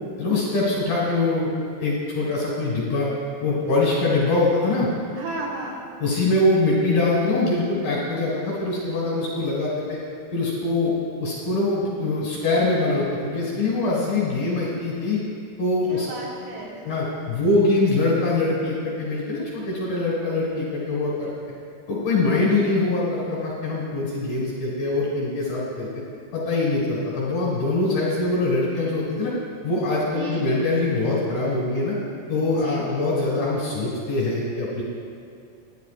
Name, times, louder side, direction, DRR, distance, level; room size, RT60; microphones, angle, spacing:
voice 1, 0.2-1.5 1.8-3.1 3.4-4.9 6.0-10.0 10.3-10.9 11.2-15.2 15.6-16.1 16.8-21.3 21.9-25.9 26.3-29.3 29.6-31.9 32.3-34.8, left 2 dB, 60° left, -5 dB, 2.9 m, -23 dB
voice 2, 5.2-5.8 15.9-16.8 30.1-30.5 32.5-33.2, right 2 dB, 75° right, -3 dB, 4.1 m, -34 dB
19.0 x 11.5 x 2.5 m, 2.4 s
omnidirectional pair, 6.0 m